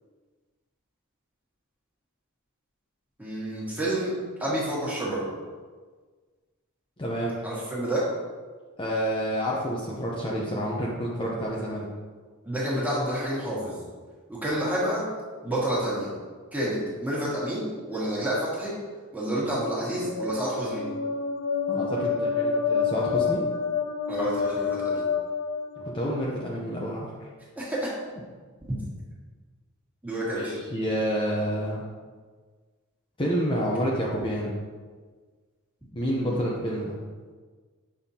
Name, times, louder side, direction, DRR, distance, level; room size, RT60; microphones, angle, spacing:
voice 1, 3.2-4.1 4.4-5.3 7.4-8.1 11.2-11.3 12.4-13.8 14.3-15.1 15.4-16.1 16.5-18.7 19.1-20.8 24.1-25.0 27.6-27.9 30.0-30.6 36.2-36.3, right 1 dB, 5° right, -7 dB, 1.8 m, -29 dB
voice 2, 7.0-7.3 8.8-11.9 21.7-23.4 25.8-27.1 30.2-31.8 33.2-34.5 35.9-36.9, equal, 25° left, -4 dB, 0.7 m, -29 dB
sound 1, 19.6-26.3, left 5 dB, 85° left, 0.5 m, -28 dB
7.1 x 5.6 x 2.8 m, 1.5 s
head